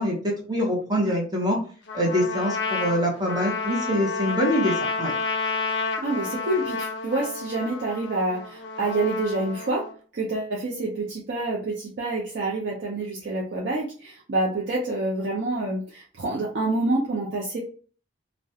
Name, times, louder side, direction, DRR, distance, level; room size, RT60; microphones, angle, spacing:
voice 1, 0.0-1.6 1.9-5.1, equal, 20° right, -2 dB, 0.7 m, -24 dB
Trumpet, 1.9-9.9, left 4 dB, 55° left, 0.4 m, -30 dB
voice 2, 6.0-9.9 10.1-17.6, right 2 dB, 55° right, -3 dB, 0.5 m, -27 dB
2.4 x 2.1 x 2.7 m, 0.41 s
head